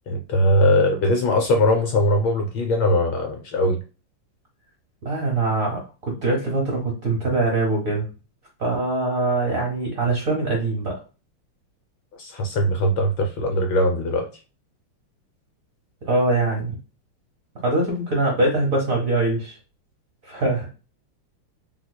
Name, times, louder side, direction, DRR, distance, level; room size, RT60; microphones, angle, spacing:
voice 1, 0.1-3.8 12.2-14.3, left 1 dB, 75° left, 3 dB, 1.2 m, -20 dB
voice 2, 5.0-8.1 8.6-10.9 16.1-16.7 17.6-19.6 20.2-20.7, right 2 dB, 55° right, -1 dB, 1.0 m, -23 dB
3.5 x 2.9 x 2.2 m, 0.33 s
omnidirectional pair, 2.4 m